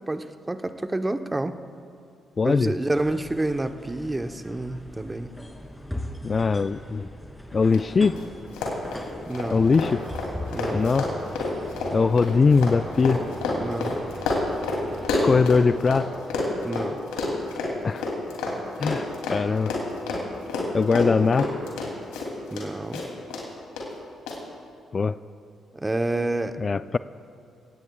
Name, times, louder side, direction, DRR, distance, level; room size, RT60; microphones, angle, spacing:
voice 1, 0.0-1.6 2.4-5.3 9.3-9.6 10.5-10.8 13.5-14.0 16.6-17.0 22.5-23.0 25.7-26.6, right 2 dB, 20° right, 9 dB, 0.9 m, -28 dB
voice 2, 2.4-2.7 6.2-7.1 7.5-8.2 9.5-10.0 10.7-11.1 11.9-13.2 15.2-16.1 17.8-18.1 18.8-19.7 20.7-21.5 24.9-25.2 26.6-27.0, left 4 dB, 40° left, 15 dB, 0.3 m, -21 dB
sound 1, 2.9-15.1, left 1 dB, 5° left, 2.8 m, -41 dB
Run, 7.7-7.8 8.1-8.2 8.5-16.0 16.3-22.7 22.9-23.4 23.8-23.9 24.3-24.4, left 3 dB, 80° left, 2.8 m, -28 dB
sound 2, 9.3-15.8, right 2 dB, 55° right, 3.9 m, -42 dB
23.0 x 17.5 x 2.3 m, 2.4 s
hypercardioid pair, 45°, 0 cm